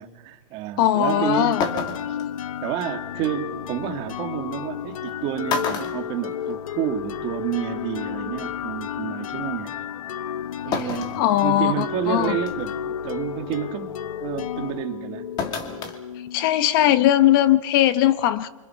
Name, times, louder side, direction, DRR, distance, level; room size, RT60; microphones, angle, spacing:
voice 1, 0.0-1.7 2.1-2.2 2.6-9.7 10.6-13.9 14.2-15.3, right 11 dB, 30° right, 2.0 m, -29 dB
voice 2, 0.8-1.6 10.7-10.8 11.2-12.3 16.3-18.5, left 12 dB, 40° left, 0.9 m, -19 dB
sound 1, 1.1-16.7, left 9 dB, 75° left, 1.0 m, -32 dB
sound 2, 1.1-1.2 1.6-2.3 3.9-4.0 4.9-5.1 5.5-6.9 7.2-7.3 8.5-8.6 10.7-11.2 11.8-11.9 12.5-12.8 15.4-16.0 16.3-16.4, left 5 dB, 25° left, 2.4 m, -29 dB
28.5 x 26.0 x 5.8 m
hypercardioid pair, 160°, 18 cm